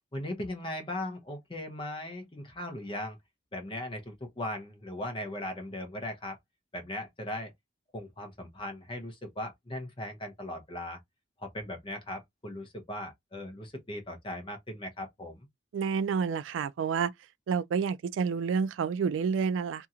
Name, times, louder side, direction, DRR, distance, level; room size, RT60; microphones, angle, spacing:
voice 1, 0.1-3.2 3.5-6.4 6.7-7.5 7.9-11.0 11.4-15.5, left 1 dB, 25° left, 0.8 m, -38 dB
voice 2, 15.7-17.1 17.5-19.9, right 6 dB, 75° right, 0.3 m, -29 dB
2.8 x 2.7 x 2.4 m
head